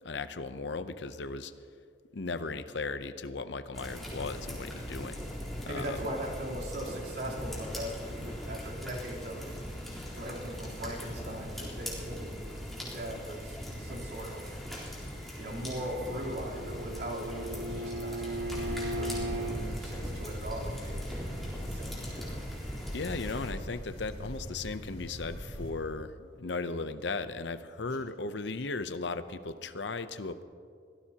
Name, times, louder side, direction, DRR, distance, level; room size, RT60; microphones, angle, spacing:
voice 1, 0.0-1.5 2.1-5.2 5.7-6.0 22.9-30.4, left 3 dB, 75° left, 11 dB, 0.7 m, -36 dB
sound 1, 3.7-23.5, equal, ahead, 3.7 m, -40 dB
voice 2, 5.6-9.6 10.1-14.6 15.4-18.2 18.9-22.4 27.8-28.0, right 1 dB, 60° right, -4 dB, 3.6 m, -40 dB
Bowed string instrument, 15.8-19.6, right 1 dB, 85° right, 1.7 m, -37 dB
sound 2, 18.3-25.7, equal, 25° left, 4.1 m, -40 dB
24.5 x 17.0 x 2.9 m, 2.2 s
head